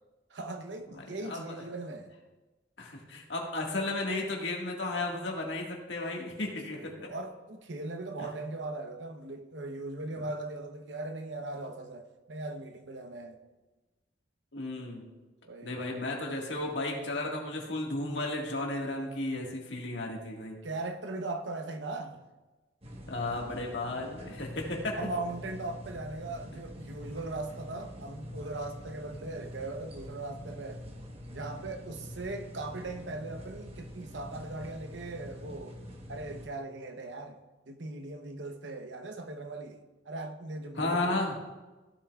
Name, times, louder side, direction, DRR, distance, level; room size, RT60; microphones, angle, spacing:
voice 1, 0.3-2.1 6.5-13.4 15.4-15.8 20.6-22.2 24.9-30.8 31.3-35.8 36.1-37.4 37.7-41.2, right 2 dB, 85° right, 0.9 m, -39 dB
voice 2, 1.1-1.6 2.8-6.9 8.2-8.3 14.5-15.0 15.6-20.6 23.1-25.0 40.8-41.4, left 2 dB, 80° left, 1.8 m, -34 dB
sound 1, 22.8-36.5, left 1 dB, 35° right, 1.2 m, -45 dB
15.0 x 7.7 x 2.4 m
head